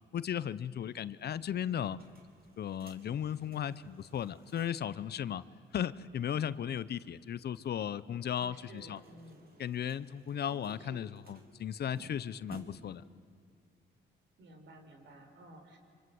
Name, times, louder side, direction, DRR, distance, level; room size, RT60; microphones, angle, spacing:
voice 1, 0.1-2.0 2.6-5.4 5.7-9.0 9.6-13.0, left 9 dB, 55° left, 17 dB, 0.8 m, -36 dB
sound 1, 1.7-5.0 5.3-5.4 5.6-5.7 8.5-13.0, right 3 dB, 50° right, 3.5 m, -58 dB
voice 2, 8.3-9.5 10.5-11.1 14.4-15.8, right 2 dB, 70° right, 5 dB, 4.6 m, -53 dB
26.5 x 26.0 x 7.9 m, 2.4 s
cardioid pair, 90°, 20 cm